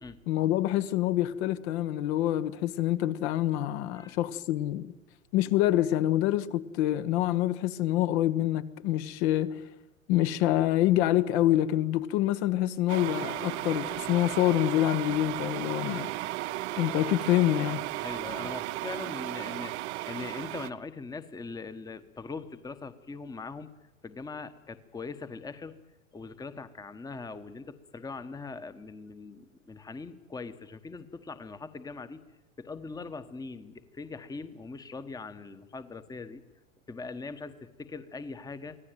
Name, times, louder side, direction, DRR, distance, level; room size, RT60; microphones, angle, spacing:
voice 1, 0.3-4.9 5.3-9.6 10.1-16.1 16.8-17.9, left 13 dB, 50° left, 1.3 m, -26 dB
sound 1, 12.9-20.7, right 17 dB, 55° right, 0.9 m, -35 dB
voice 2, 18.0-23.7 24.0-25.8 26.1-32.2 32.6-36.4 36.9-38.8, left 4 dB, 10° left, 1.2 m, -41 dB
24.5 x 16.5 x 9.2 m
hypercardioid pair, 100°, 41 cm